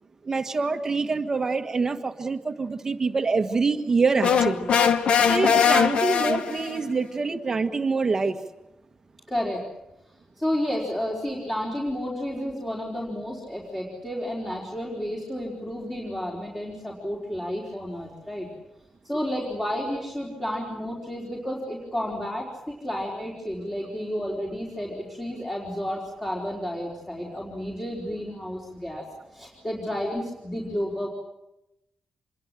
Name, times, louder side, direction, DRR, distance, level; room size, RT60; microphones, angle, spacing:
voice 1, 0.2-4.7 5.3-8.4, right 4 dB, 25° right, 7 dB, 1.6 m, -25 dB
sound 1, 4.2-6.8, left 7 dB, 60° left, 1.4 m, -21 dB
voice 2, 9.3-9.6 10.4-18.5 19.0-29.0 29.3-31.1, equal, 15° left, -4 dB, 4.6 m, -31 dB
27.0 x 22.0 x 7.7 m, 0.90 s
wide cardioid pair, 175°, 2 cm